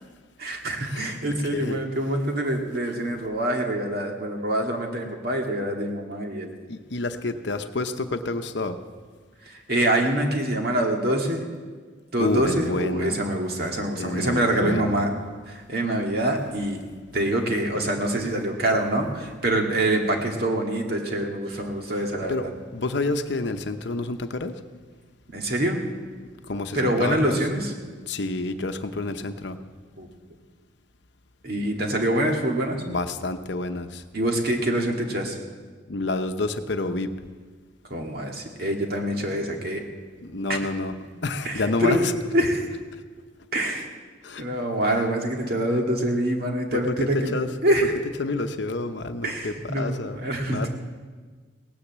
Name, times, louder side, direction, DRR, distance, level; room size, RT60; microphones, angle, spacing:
voice 1, 0.4-6.5 9.5-11.4 12.1-15.2 15.5-16.8 17.1-22.5 25.3-25.8 26.7-27.7 30.0-30.1 31.4-32.8 34.1-35.4 37.9-39.8 40.5-40.6 41.5-42.1 42.3-42.7 43.5-43.8 44.4-47.3 47.6-47.9 49.2-50.7, right 1 dB, 50° right, 2 dB, 2.0 m, -25 dB
voice 2, 6.7-8.8 12.2-13.2 14.0-15.0 22.3-24.5 26.5-27.4 28.1-29.6 32.9-34.0 35.9-37.1 40.2-40.9 41.2-42.1 44.2-44.4 44.9-45.0 46.7-47.5 48.2-50.2 50.5-50.7, left 2 dB, 60° left, 8 dB, 0.8 m, -29 dB
17.5 x 10.0 x 7.4 m, 1.5 s
head